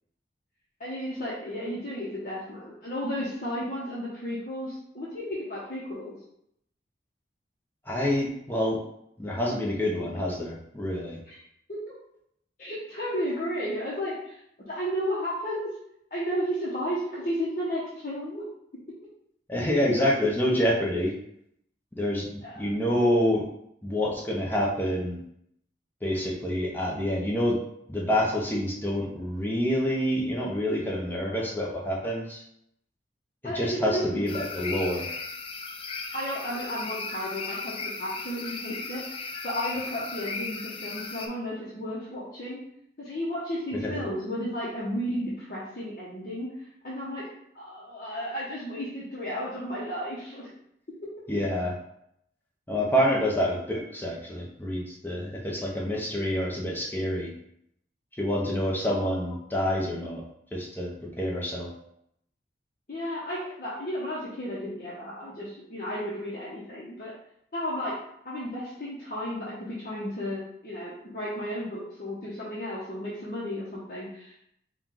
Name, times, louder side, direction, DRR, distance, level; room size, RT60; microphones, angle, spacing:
voice 1, 0.8-6.1 11.3-11.4 11.7-11.9 12.6-14.4 14.7-15.7 16.1-18.4 22.4-22.7 33.4-34.4 36.1-37.7 38.0-39.0 39.4-42.6 43.0-46.5 46.8-47.2 47.5-50.5 58.8-59.1 62.9-67.1 67.5-67.9 68.2-74.4, equal, 50° left, -8 dB, 0.9 m, -33 dB
voice 2, 7.9-8.8 9.2-11.2 19.5-21.1 22.0-22.2 22.6-23.4 23.8-25.2 26.0-27.6 27.9-32.4 33.5-35.1 43.7-43.9 51.3-51.7 52.7-57.3 58.2-60.2 60.5-60.9 61.2-61.7, equal, 10° left, -4 dB, 0.7 m, -27 dB
sound 1, 34.3-41.3, left 4 dB, 30° left, 0.4 m, -36 dB
4.4 x 2.4 x 3.8 m, 0.74 s
head